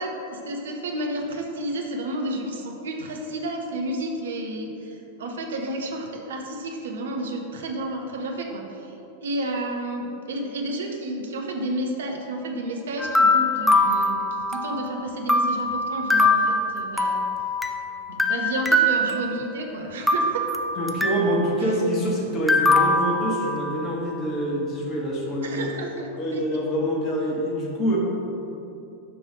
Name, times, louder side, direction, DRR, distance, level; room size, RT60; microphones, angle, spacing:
voice 1, 0.0-8.9 9.2-17.3 18.1-20.5 25.4-26.4, right 1 dB, 65° right, 1 dB, 1.1 m, -31 dB
sound 1, 13.0-14.9 15.3-17.8 18.2-19.7 20.1-21.4 22.5-23.9, left 2 dB, ahead, 0.5 m, -22 dB
voice 2, 20.8-25.7 26.2-28.0, equal, 25° left, -3 dB, 1.8 m, -26 dB
7.0 x 5.5 x 6.4 m, 2.9 s
figure-of-eight pair, 90°, 0 cm